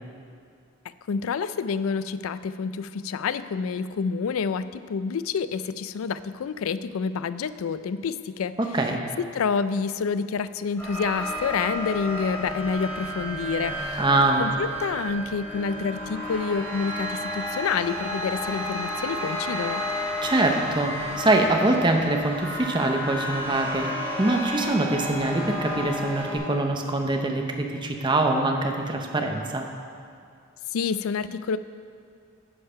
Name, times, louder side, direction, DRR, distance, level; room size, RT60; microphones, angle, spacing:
voice 1, 1.1-8.6 9.2-14.0 14.4-19.8 30.7-31.6, left 5 dB, 90° left, 14 dB, 0.4 m, -28 dB
voice 2, 8.6-9.0 14.0-14.4 19.9-23.9 24.2-29.7, right 2 dB, 25° right, 3 dB, 0.8 m, -24 dB
sound 1, 10.8-26.4, equal, 10° left, 2.2 m, -32 dB
10.0 x 6.6 x 5.6 m, 2.3 s
head